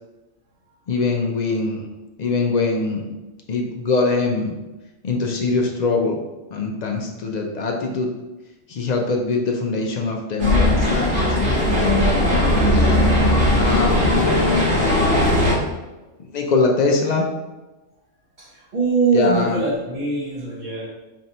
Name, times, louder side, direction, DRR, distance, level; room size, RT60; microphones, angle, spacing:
voice 1, 0.9-1.9 2.2-3.0 3.5-4.5 5.0-6.2 6.5-8.1 8.7-11.4 13.5-15.1 16.3-17.2 19.1-19.6, left 3 dB, 60° left, 1 dB, 0.4 m, -22 dB
sound 1, 10.4-15.5, left 1 dB, 65° right, 1.4 m, -18 dB
voice 2, 13.0-13.5 16.0-16.1 18.4-20.9, right 4 dB, 45° right, -7 dB, 0.8 m, -23 dB
3.3 x 2.7 x 4.1 m, 1.1 s
omnidirectional pair, 1.3 m